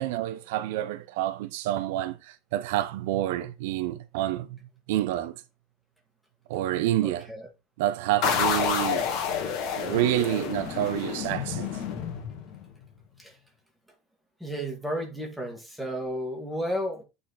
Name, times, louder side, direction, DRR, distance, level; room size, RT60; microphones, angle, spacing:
voice 1, 0.0-4.6 4.9-5.4 6.5-7.3 7.8-9.1 9.8-11.7, right 14 dB, 75° right, 0.6 m, -28 dB
voice 2, 7.0-7.5 13.2-13.4 14.4-17.0, equal, ahead, 1.8 m, -33 dB
sound 1, 8.2-12.7, left 7 dB, 50° left, 1.9 m, -29 dB
8.8 x 4.1 x 4.1 m
cardioid pair, 170°, 0 cm